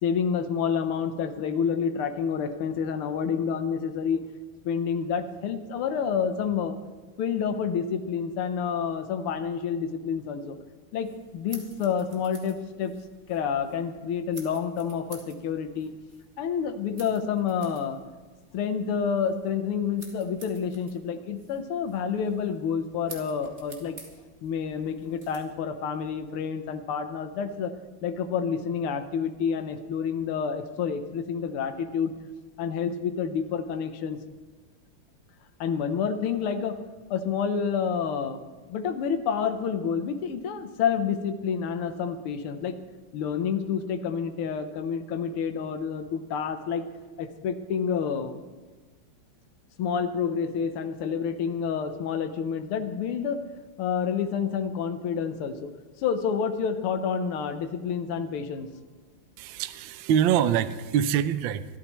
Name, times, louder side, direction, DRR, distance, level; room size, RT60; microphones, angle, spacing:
voice 1, 0.0-4.2 4.7-6.8 7.2-10.6 10.9-12.9 13.3-15.9 16.4-18.0 18.5-24.0 24.4-27.7 28.0-32.1 32.6-34.2 35.6-36.8 37.1-38.4 38.7-42.8 43.1-46.9 47.2-48.4 49.8-53.4 53.8-55.7 56.0-58.7, left 7 dB, 80° left, 8 dB, 1.8 m, -29 dB
sound 1, 10.9-25.5, right 2 dB, 25° right, 2.1 m, -51 dB
voice 2, 59.4-61.7, right 9 dB, 70° right, 11 dB, 1.3 m, -24 dB
24.5 x 13.0 x 3.1 m, 1.3 s
omnidirectional pair, 2.4 m